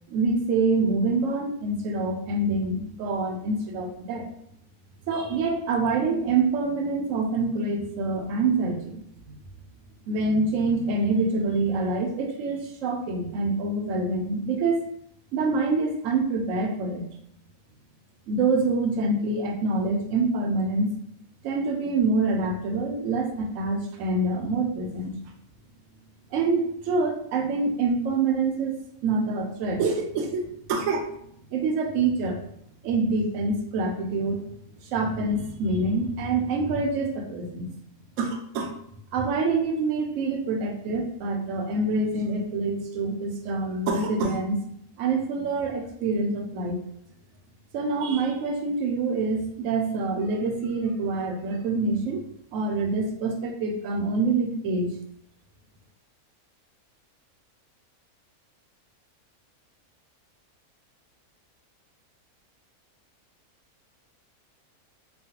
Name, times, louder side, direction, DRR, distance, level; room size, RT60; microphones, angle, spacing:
voice 1, 0.1-4.3 5.1-9.4 10.1-14.8 15.3-17.1 18.3-20.9 21.4-25.2 26.3-31.1 31.5-32.4 32.8-34.4 34.8-37.7 38.2-38.7 39.1-44.6 45.0-46.8 47.7-52.3 52.5-54.9, right 3 dB, 70° right, 4 dB, 0.9 m, -26 dB
3.1 x 2.2 x 2.8 m, 0.71 s
omnidirectional pair, 1.6 m